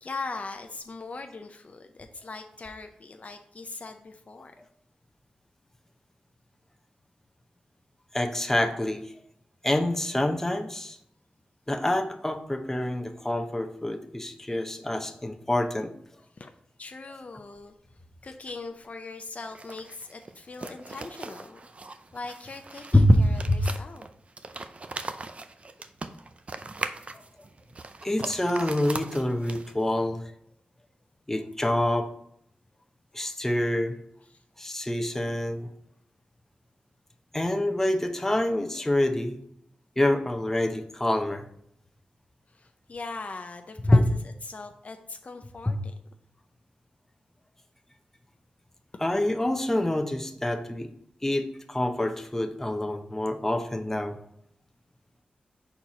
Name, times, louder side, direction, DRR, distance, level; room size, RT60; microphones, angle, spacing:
voice 1, 0.0-4.5 16.3-16.5 16.8-17.7 18.2-21.6 22.1-24.1 34.3-34.4 42.5-44.2 44.4-45.9, left 3 dB, 50° left, 6 dB, 0.5 m, -40 dB
voice 2, 8.1-9.1 9.6-11.0 11.7-15.9 22.9-23.7 27.1-27.2 28.0-30.2 31.3-32.1 33.1-34.0 34.6-35.7 37.3-39.4 40.0-41.4 43.8-44.0 45.7-45.8 49.0-50.9 51.2-54.2, left 1 dB, 15° left, 4 dB, 0.7 m, -26 dB
sound 1, 19.4-29.9, right 3 dB, 45° right, 0.5 m, -40 dB
4.5 x 4.3 x 5.0 m, 0.70 s
cardioid pair, 65°, 3 cm